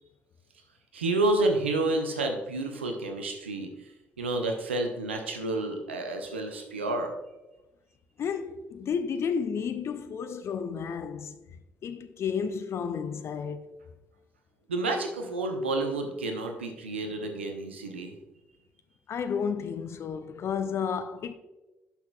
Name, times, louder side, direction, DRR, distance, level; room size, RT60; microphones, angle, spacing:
voice 1, 0.9-3.7 4.2-7.1 14.7-18.1, right 2 dB, 80° right, 0.7 m, -29 dB
voice 2, 8.2-11.4 11.8-13.6 19.1-21.3, left 6 dB, 45° left, 0.5 m, -32 dB
11.5 x 5.8 x 2.3 m
figure-of-eight pair, 45°, 6 cm